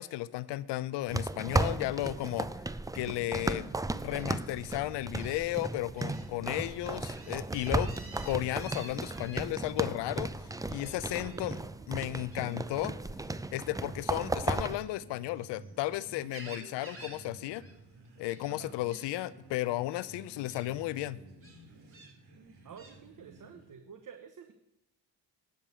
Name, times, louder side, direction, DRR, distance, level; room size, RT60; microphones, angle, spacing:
voice 1, 0.0-2.5 2.9-3.7 4.0-7.9 8.2-10.3 10.7-11.6 11.9-12.9 13.5-17.6 18.2-21.2, left 16 dB, 80° left, 18 dB, 0.6 m, -34 dB
sound 1, 1.1-14.8, right 2 dB, 10° right, 0.6 m, -35 dB
Gull seagull, 4.1-4.2 5.2-5.4 6.0-6.2 6.6-9.4 10.7-11.4 12.3-12.6 14.4-15.7 16.1-17.2 17.5-17.7 18.0-18.5 18.9-19.2 19.9-20.0 20.5-20.7 21.4-22.1 22.8-23.0, right 2 dB, 30° right, 3.4 m, -51 dB
sound 2, 4.3-23.8, right 3 dB, 65° right, 2.9 m, -53 dB
voice 2, 11.2-11.6 18.5-18.8 22.6-24.5, right 7 dB, 50° right, 6 dB, 1.2 m, -49 dB
10.0 x 5.3 x 8.0 m, 0.88 s
supercardioid pair, 50°, 41 cm